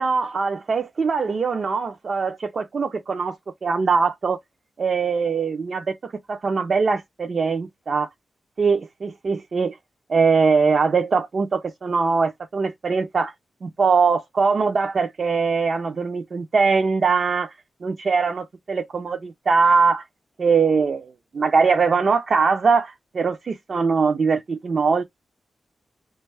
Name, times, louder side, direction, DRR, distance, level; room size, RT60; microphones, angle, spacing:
voice 1, 0.0-3.4 3.6-4.4 4.8-8.1 8.6-9.8 10.1-13.3 13.6-17.5 17.8-20.0 20.4-25.0, right 5 dB, 45° right, 0.4 m, -21 dB
3.0 x 2.2 x 3.2 m
wide cardioid pair, 175°, 0 cm